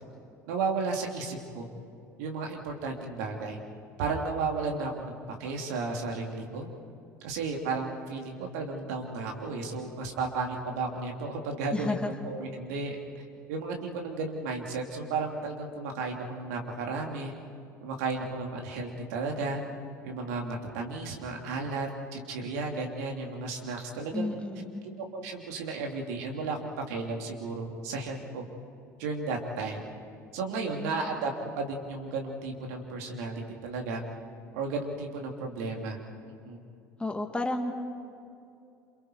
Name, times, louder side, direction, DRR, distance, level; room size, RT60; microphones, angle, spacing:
voice 1, 0.5-1.7 2.2-3.6 4.0-5.1 5.4-6.7 7.2-12.0 12.2-13.0 13.5-17.3 17.8-19.6 20.0-24.4 25.1-28.4 29.0-29.8 30.3-31.3 31.5-34.0 34.5-36.0 36.4-36.6, right 3 dB, 65° right, 1 dB, 3.2 m, -33 dB
voice 2, 11.7-12.1 24.1-24.9 30.5-31.1 37.0-37.7, left 2 dB, 10° left, 4 dB, 2.4 m, -32 dB
28.5 x 28.5 x 4.6 m, 2.5 s
figure-of-eight pair, 65°, 9 cm